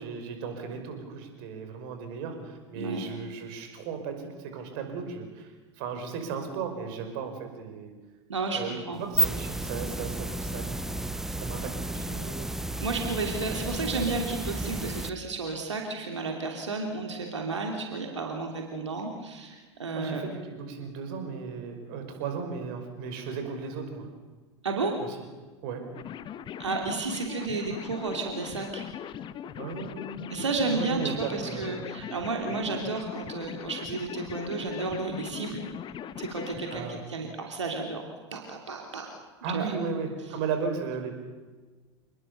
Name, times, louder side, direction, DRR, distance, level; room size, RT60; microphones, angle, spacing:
voice 1, 0.0-5.5 5.8-7.9 8.5-11.0 11.3-12.5 13.4-13.7 19.9-24.1 25.6-25.8 29.6-31.8 32.4-32.6 36.7-37.0 39.4-41.1, right 5 dB, 55° right, 6 dB, 5.5 m, -36 dB
voice 2, 2.8-3.1 8.3-9.0 12.8-20.2 24.6-25.0 26.6-28.8 30.3-35.6 36.2-38.0 38.3-39.1 39.5-39.7, right 3 dB, 80° right, 2 dB, 2.9 m, -32 dB
sound 1, 8.9-15.1, right 1 dB, 5° right, 0.9 m, -32 dB
sound 2, 25.9-36.8, left 9 dB, 30° left, 1.1 m, -40 dB
28.0 x 21.0 x 6.8 m, 1.3 s
figure-of-eight pair, 80°, 15 cm